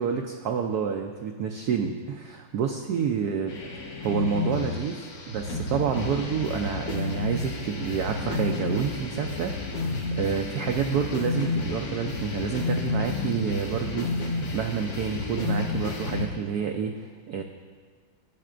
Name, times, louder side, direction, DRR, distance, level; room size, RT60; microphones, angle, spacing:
voice 1, 0.0-3.6 4.0-5.0 5.3-17.4, right 7 dB, 85° right, 3 dB, 0.8 m, -29 dB
sound 1, 3.5-16.3, left 3 dB, 55° left, 1.6 m, -31 dB
13.5 x 7.7 x 2.5 m, 1.5 s
omnidirectional pair, 2.2 m